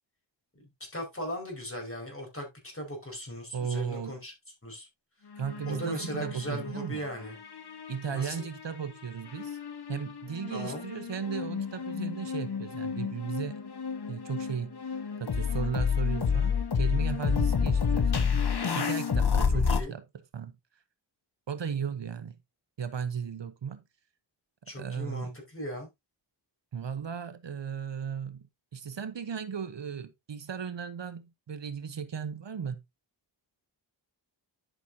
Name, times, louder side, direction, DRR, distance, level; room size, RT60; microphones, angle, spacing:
voice 1, 0.9-4.3 4.6-4.9 5.6-7.3 8.1-8.5 10.5-10.8 19.5-19.9 24.7-25.9, equal, 30° left, 4.9 m, -38 dB
voice 2, 3.5-4.2 5.4-7.0 7.9-9.6 9.9-13.6 14.1-18.4 18.7-20.0 20.3-20.6 21.5-22.4 22.8-23.8 24.8-25.3 26.7-28.5 28.7-32.8, right 7 dB, 70° right, 1.0 m, -36 dB
sound 1, 5.3-6.9 7.2-8.6 9.3-19.8, left 6 dB, 55° left, 1.3 m, -30 dB
11.0 x 6.2 x 2.7 m
wide cardioid pair, 60°, 45 cm